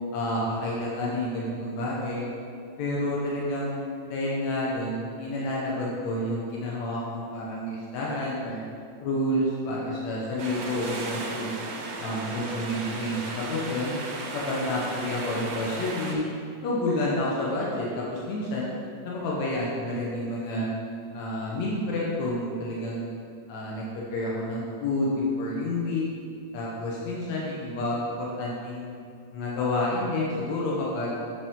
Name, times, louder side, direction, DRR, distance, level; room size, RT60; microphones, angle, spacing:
voice 1, 0.1-2.3 2.8-3.8 4.1-8.6 9.0-11.5 12.0-13.9 14.3-16.3 16.6-18.7 19.0-20.7 21.1-23.0 23.5-26.1 26.5-28.9 29.3-31.2, left 1 dB, 75° left, -5 dB, 1.6 m, -29 dB
sound 1, 10.4-16.2, right 3 dB, 70° right, 2.5 m, -35 dB
7.4 x 7.2 x 3.7 m, 2.3 s
omnidirectional pair, 4.6 m